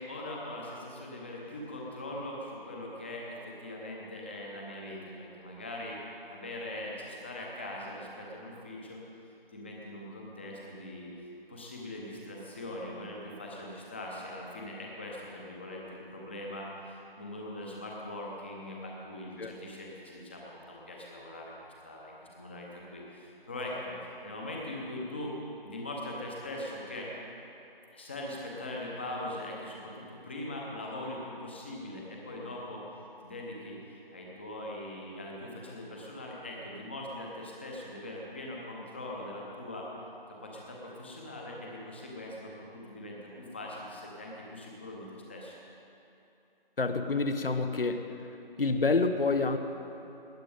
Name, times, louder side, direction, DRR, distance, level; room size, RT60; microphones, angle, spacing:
voice 1, 0.0-6.0 6.3-9.0 9.5-11.1 11.5-25.3 25.6-27.1 27.9-32.8 33.2-39.9 40.3-45.5, left 1 dB, 10° left, -2 dB, 0.9 m, -41 dB
voice 2, 46.8-48.1 48.6-49.6, left 3 dB, 70° left, 8 dB, 1.1 m, -27 dB
18.5 x 10.5 x 5.0 m, 2.9 s
figure-of-eight pair, 165°, 29 cm